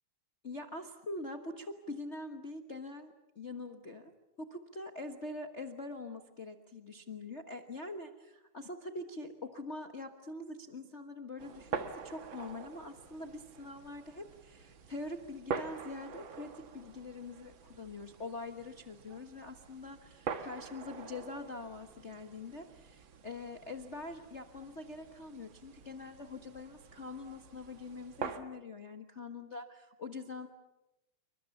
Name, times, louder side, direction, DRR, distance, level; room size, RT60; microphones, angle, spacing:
voice 1, 0.4-4.1 4.4-30.5, left 2 dB, 75° left, 5 dB, 0.6 m, -44 dB
sound 1, 11.4-28.4, right 6 dB, 50° right, 1.8 m, -45 dB
28.5 x 24.5 x 7.1 m, 0.97 s
omnidirectional pair, 3.6 m